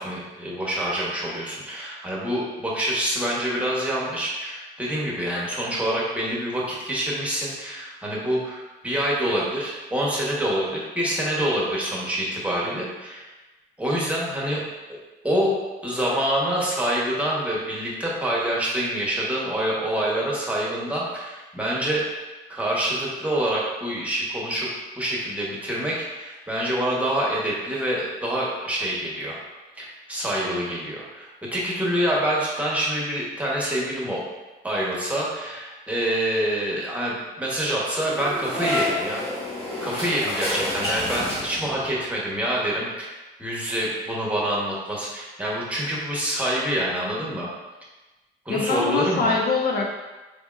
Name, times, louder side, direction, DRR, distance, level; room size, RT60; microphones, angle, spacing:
voice 1, 0.0-13.3 13.8-14.6 14.9-15.0 15.2-15.5 15.8-22.0 22.5-24.7 25.0-29.4 29.8-34.2 34.6-39.2 39.8-47.5 48.4-49.4, right 1 dB, 5° right, -5 dB, 1.1 m, -26 dB
sound 1, 38.0-41.9, left 1 dB, 30° left, 1.3 m, -29 dB
voice 2, 48.5-49.9, left 4 dB, 50° left, 0 dB, 0.5 m, -23 dB
4.1 x 3.5 x 2.4 m, 1.2 s
cardioid pair, 90°, 20 cm